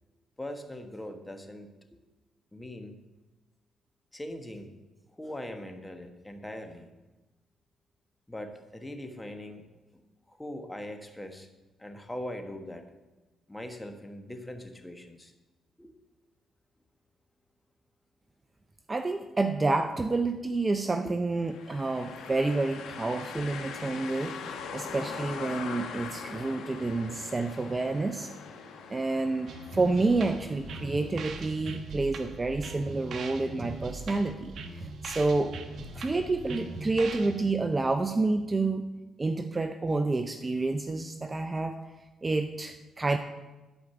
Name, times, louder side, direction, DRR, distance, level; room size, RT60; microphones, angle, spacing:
voice 1, 0.4-1.7 2.5-3.0 4.1-4.7 5.1-6.9 8.3-9.6 10.3-11.5 11.8-12.8 13.5-15.3 15.8-15.9 21.0-21.1 23.3-23.4, left 1 dB, 10° left, 6 dB, 1.3 m, -41 dB
voice 2, 18.9-24.4 24.7-28.3 28.9-35.5 35.9-38.9 39.2-41.8 42.2-43.2, right 3 dB, 25° right, 8 dB, 0.6 m, -29 dB
sound 1, 21.4-31.2, left 6 dB, 80° left, 1.3 m, -42 dB
sound 2, 29.5-37.5, right 3 dB, 60° right, 1.1 m, -40 dB
11.5 x 5.0 x 7.0 m, 1.1 s
cardioid pair, 90°, 0 cm